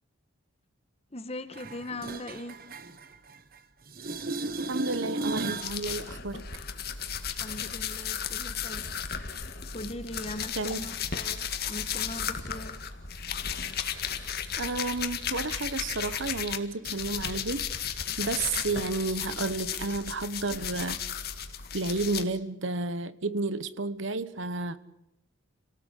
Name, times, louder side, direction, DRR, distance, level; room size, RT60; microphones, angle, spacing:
voice 1, 1.1-2.6 7.2-8.9 9.7-12.8, left 1 dB, 30° left, 11 dB, 1.5 m, -40 dB
sound 1, 1.5-3.6 3.9-5.8 11.5-11.6, right 2 dB, 45° right, 1.3 m, -35 dB
voice 2, 4.7-6.4 10.5-10.8 14.6-17.6 18.2-21.0 21.7-24.8, right 3 dB, 65° right, 14 dB, 1.2 m, -31 dB
sound 2, 5.6-16.6 16.8-22.2, left 8 dB, 45° left, 1.9 m, -34 dB
29.5 x 18.0 x 8.4 m, 0.90 s
head